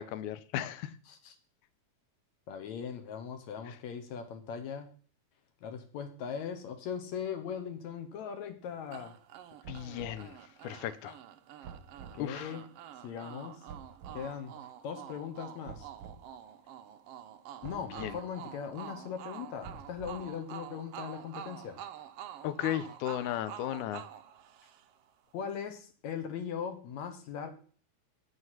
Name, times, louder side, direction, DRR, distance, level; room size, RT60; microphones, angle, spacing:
voice 1, 0.0-0.9 3.7-3.8 9.7-10.4 10.6-11.2 12.2-12.5 18.0-18.2 22.4-24.0, left 12 dB, 85° left, 2.1 m, -35 dB
voice 2, 2.5-4.9 5.6-9.1 12.1-12.6 13.0-13.6 14.1-15.9 17.6-21.8 25.3-27.5, left 7 dB, 70° left, 2.3 m, -39 dB
sound 1, 8.9-25.1, right 10 dB, 85° right, 1.4 m, -48 dB
sound 2, 9.6-10.3 11.6-12.2 13.7-14.2 15.7-16.2 17.6-18.2 19.6-20.4, right 6 dB, 55° right, 1.3 m, -48 dB
8.0 x 7.9 x 5.8 m
omnidirectional pair, 3.5 m